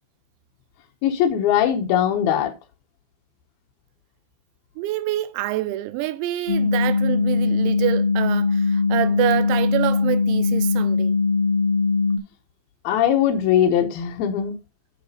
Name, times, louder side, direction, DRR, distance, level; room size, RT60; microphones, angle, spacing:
voice 1, 1.0-2.5 12.8-14.5, left 10 dB, 90° left, 2.1 m, -20 dB
voice 2, 4.8-11.2, right 15 dB, 90° right, 3.5 m, -26 dB
sound 1, 6.5-12.2, left 4 dB, 50° left, 0.5 m, -20 dB
11.5 x 4.2 x 5.3 m
omnidirectional pair, 5.9 m